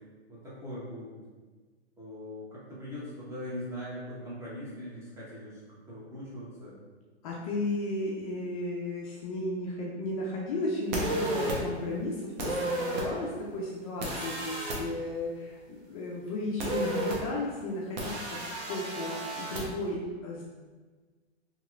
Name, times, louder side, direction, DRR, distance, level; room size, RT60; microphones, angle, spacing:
voice 1, 0.3-1.2 2.0-5.6 5.9-6.8, left 1 dB, 10° right, -8 dB, 0.9 m, -41 dB
voice 2, 7.2-18.4 18.7-20.4, left 2 dB, 35° left, -3 dB, 0.4 m, -34 dB
sound 1, 10.9-11.6 12.4-13.0 14.0-14.8 16.6-17.2 18.0-19.6, right 1 dB, 40° right, 0.8 m, -32 dB
2.9 x 2.9 x 2.5 m, 1.4 s
hypercardioid pair, 130°, 34 cm